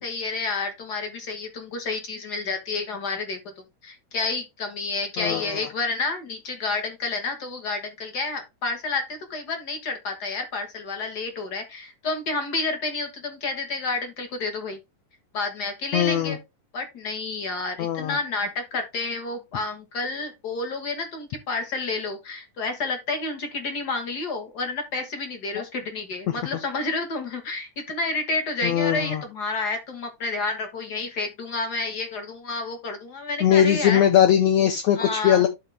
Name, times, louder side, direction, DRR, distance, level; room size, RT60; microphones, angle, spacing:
voice 1, 0.0-3.4 3.8-14.8 15.3-16.4 16.7-34.0 35.0-35.5, left 3 dB, 45° left, 1.3 m, -30 dB
voice 2, 5.2-5.5 15.9-16.4 17.8-18.2 25.6-25.7 28.6-29.2 33.4-35.5, left 10 dB, 75° left, 1.6 m, -20 dB
12.0 x 4.2 x 3.3 m
omnidirectional pair, 3.7 m